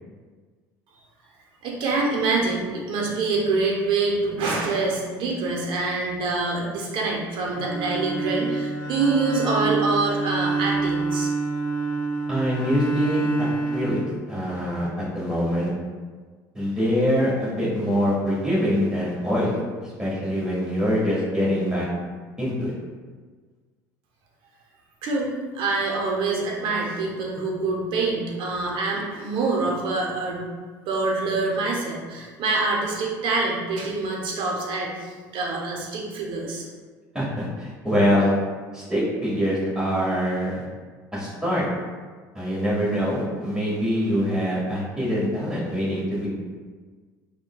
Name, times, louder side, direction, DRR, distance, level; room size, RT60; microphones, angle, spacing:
voice 1, 1.6-11.3 25.0-30.5 30.9-36.6, right 3 dB, 60° right, -1 dB, 0.7 m, -25 dB
Bowed string instrument, 7.5-14.7, right 4 dB, 85° left, 0.5 m, -27 dB
voice 2, 12.3-14.0 14.3-15.7 16.5-19.5 19.8-21.9 22.4-22.7 37.1-38.3 38.7-40.6 41.1-41.6 42.3-46.3, equal, 5° right, -7 dB, 1.3 m, -24 dB
3.7 x 2.2 x 2.2 m, 1.5 s
supercardioid pair, 85°, 9 cm